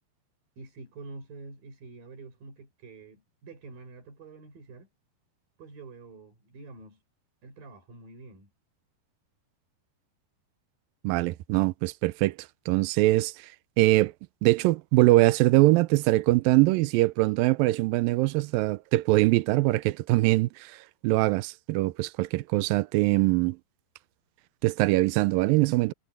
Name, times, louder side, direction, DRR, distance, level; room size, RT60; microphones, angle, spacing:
voice 1, 0.6-4.9 5.6-7.0 7.4-8.5, right 3 dB, 60° right, 7.9 m, -47 dB
voice 2, 11.0-12.4 12.7-13.3 13.8-14.1 14.4-20.7 21.0-23.6 24.6-25.9, right 19 dB, 80° right, 2.1 m, -22 dB
omnidirectional pair, 4.7 m